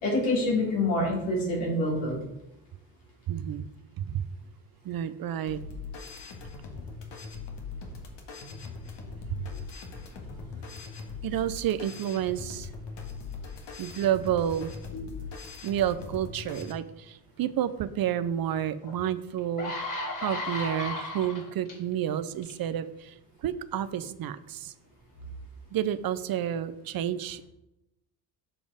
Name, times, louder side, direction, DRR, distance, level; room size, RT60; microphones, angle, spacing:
voice 1, 0.0-2.2 14.9-15.0, left 1 dB, 80° left, -3 dB, 3.2 m, -26 dB
voice 2, 3.3-3.7 4.0-4.2 4.8-5.6 9.4-9.5 11.2-12.7 13.8-14.7 15.6-19.7 20.2-23.1 23.4-24.7 25.7-27.5, right 10 dB, 50° right, 13 dB, 0.6 m, -30 dB
sound 1, 5.5-16.7, left 4 dB, 60° left, 1.8 m, -41 dB
sound 2, 18.8-18.9 19.4-21.7 22.4-22.6, left 2 dB, 40° left, 2.6 m, -34 dB
7.1 x 5.1 x 4.9 m, 0.89 s
hypercardioid pair, 55°, 47 cm